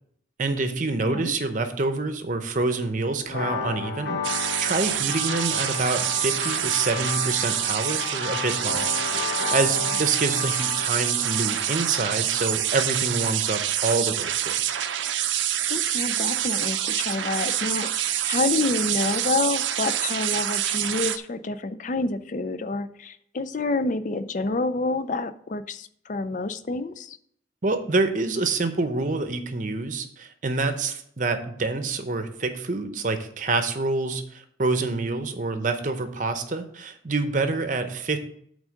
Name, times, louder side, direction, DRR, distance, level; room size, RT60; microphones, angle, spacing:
voice 1, 0.4-8.9 9.5-14.5 27.6-38.2, right 3 dB, 45° right, 8 dB, 0.7 m, -27 dB
sound 1, 3.3-12.9, left 6 dB, 70° left, 1.0 m, -33 dB
sound 2, 4.2-21.2, right 11 dB, 85° right, 0.5 m, -26 dB
voice 2, 15.7-27.2, left 3 dB, 40° left, 12 dB, 0.4 m, -28 dB
8.6 x 3.7 x 6.4 m, 0.67 s
head